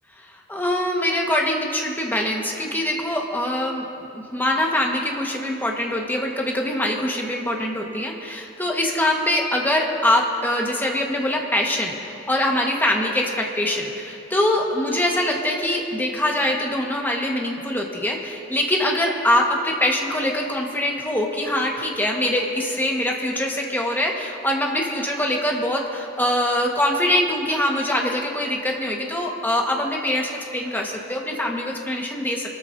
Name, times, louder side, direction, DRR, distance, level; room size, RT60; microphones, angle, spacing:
voice 1, 0.2-3.8 4.1-12.0 12.3-32.5, left 1 dB, 10° left, 0 dB, 1.4 m, -23 dB
26.5 x 13.0 x 2.7 m, 2.8 s
head